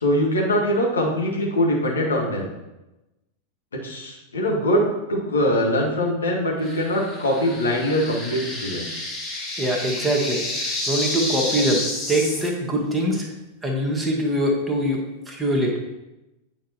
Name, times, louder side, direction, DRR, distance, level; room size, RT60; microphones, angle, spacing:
voice 1, 0.0-2.5 3.8-4.8 5.1-8.9, equal, 70° left, -1 dB, 1.5 m, -22 dB
sound 1, 6.6-12.5, left 2 dB, 25° left, 1.4 m, -30 dB
voice 2, 9.6-13.3 13.6-15.7, right 1 dB, 10° right, -2 dB, 1.4 m, -23 dB
9.1 x 5.1 x 2.9 m, 0.98 s
figure-of-eight pair, 90°, 0 cm